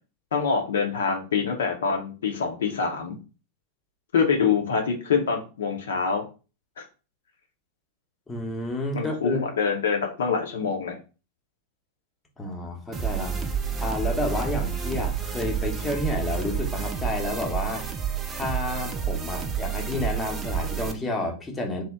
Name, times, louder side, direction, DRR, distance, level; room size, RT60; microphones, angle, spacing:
voice 1, 0.3-3.2 4.1-6.2 6.8-6.9 8.9-11.0, left 5 dB, 65° left, 0.6 m, -25 dB
voice 2, 8.3-9.4 12.4-13.4 13.8-17.9 18.3-21.8, left 1 dB, 15° left, 0.8 m, -30 dB
sound 1, 12.9-20.9, right 7 dB, 20° right, 0.5 m, -29 dB
2.8 x 2.1 x 3.5 m
figure-of-eight pair, 90°, 0 cm